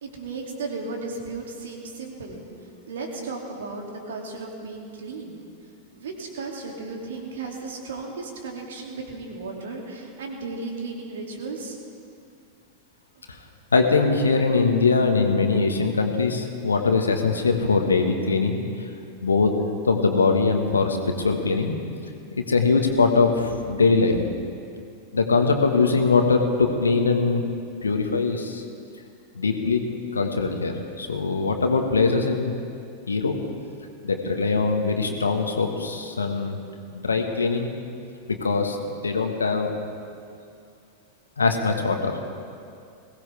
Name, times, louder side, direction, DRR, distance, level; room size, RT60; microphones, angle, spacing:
voice 1, 0.0-2.4 2.9-5.4 5.9-11.8, right 3 dB, 60° right, 1 dB, 2.5 m, -35 dB
voice 2, 13.7-18.9 19.2-19.5 19.8-21.8 22.4-24.2 25.1-27.4 27.8-28.6 29.3-29.8 30.1-32.5 33.1-33.3 34.0-36.6 36.9-37.7 38.3-39.7 41.4-42.2, left 4 dB, 75° left, 4 dB, 1.5 m, -22 dB
21.0 x 17.0 x 3.4 m, 2.4 s
figure-of-eight pair, 90°, 0 cm